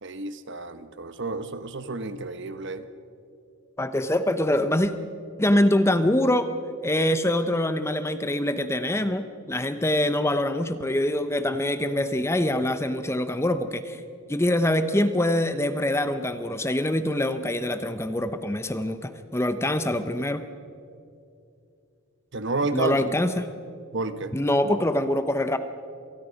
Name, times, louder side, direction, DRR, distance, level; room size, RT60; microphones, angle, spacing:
voice 1, 0.0-2.9 22.3-23.1 23.9-24.4, right 3 dB, 55° right, 11 dB, 1.0 m, -30 dB
voice 2, 3.8-4.9 5.4-6.5 6.8-14.0 14.3-20.4 22.7-23.5 24.3-25.6, left 1 dB, 10° left, 10 dB, 0.6 m, -24 dB
26.5 x 19.5 x 5.2 m, 2.6 s
head